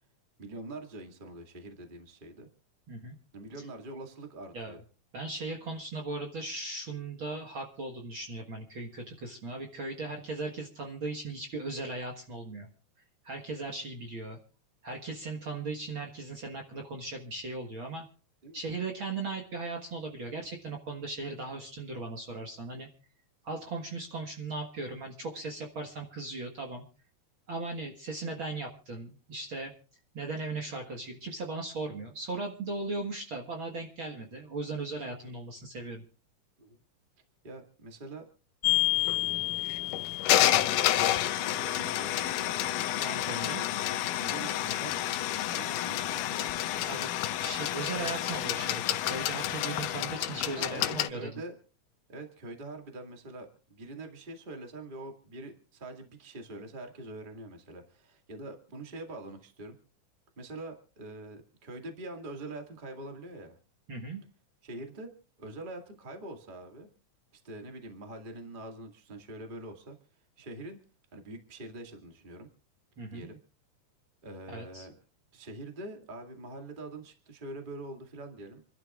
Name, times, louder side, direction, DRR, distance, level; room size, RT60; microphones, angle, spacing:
voice 1, 0.4-2.5 3.3-4.8 18.4-18.6 36.6-36.8 37.4-38.3 39.0-39.7 41.0-42.5 43.6-43.9 44.2-44.9 45.4-46.5 50.6-51.5 52.1-59.7 60.4-63.6 64.6-65.1 65.4-66.9 67.3-69.9 70.4-70.8 71.1-72.5 73.1-73.4 74.2-74.9 75.3-78.6, right 2 dB, 20° right, 4 dB, 1.7 m, -44 dB
voice 2, 5.1-12.7 13.2-14.4 14.8-18.0 18.5-22.9 23.4-26.9 27.5-29.7 30.1-36.0 43.0-43.6 46.9-47.1 47.4-51.3 63.9-64.2 73.0-73.3 74.5-74.9, right 3 dB, 45° right, 1 dB, 2.0 m, -38 dB
sound 1, 38.6-51.1, left 13 dB, 80° left, 2.3 m, -29 dB
28.5 x 12.0 x 2.4 m, 0.38 s
omnidirectional pair, 3.6 m